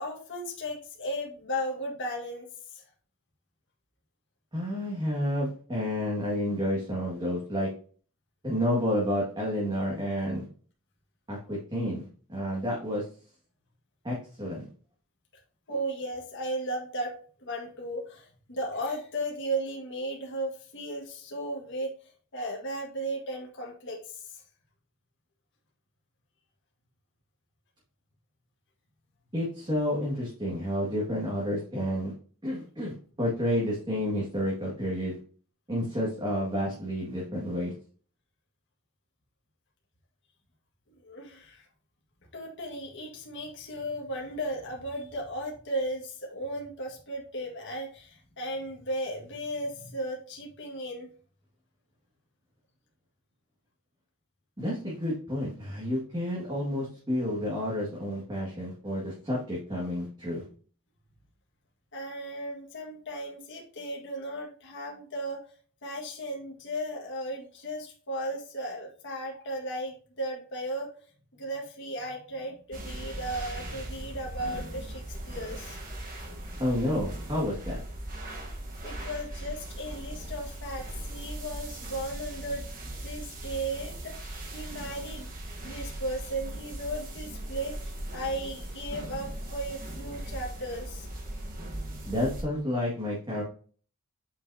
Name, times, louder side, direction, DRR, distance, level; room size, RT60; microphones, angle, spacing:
voice 1, 0.0-2.8 15.7-17.1 17.4-21.9 22.3-24.2 41.0-41.7 42.3-51.1 61.9-65.4 65.8-70.9 71.4-75.8 78.8-85.3 85.6-91.1, right 1 dB, 55° left, -1 dB, 1.7 m, -35 dB
voice 2, 4.5-7.7 8.4-10.4 11.3-13.0 14.0-14.6 29.3-32.1 32.4-35.2 35.7-37.7 54.6-60.4 76.6-77.8 92.1-93.4, equal, 20° right, -5 dB, 1.9 m, -30 dB
sound 1, 72.7-92.4, right 1 dB, 40° right, 1.3 m, -39 dB
7.9 x 5.4 x 2.8 m, 0.42 s
head